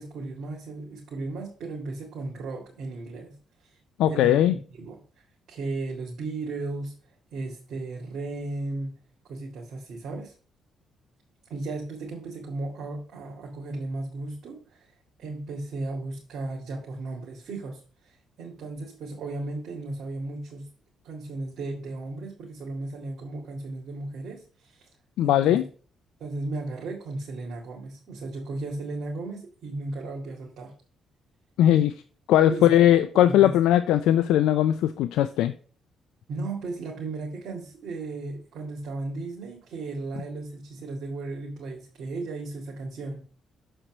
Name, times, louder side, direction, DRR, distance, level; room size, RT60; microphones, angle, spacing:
voice 1, 0.0-3.3 4.1-4.4 4.8-5.0 5.5-6.9 7.3-9.0 9.2-10.3 11.5-14.9 15.2-20.7 21.0-24.9 25.2-25.6 26.2-30.7 32.4-33.6 36.3-43.2, right 2 dB, 70° right, -2 dB, 2.1 m, -35 dB
voice 2, 4.0-4.5 25.2-25.6 31.6-31.9 32.3-35.5, left 12 dB, 90° left, 11 dB, 0.4 m, -19 dB
6.7 x 4.4 x 6.1 m, 0.40 s
cardioid pair, 90°, 0 cm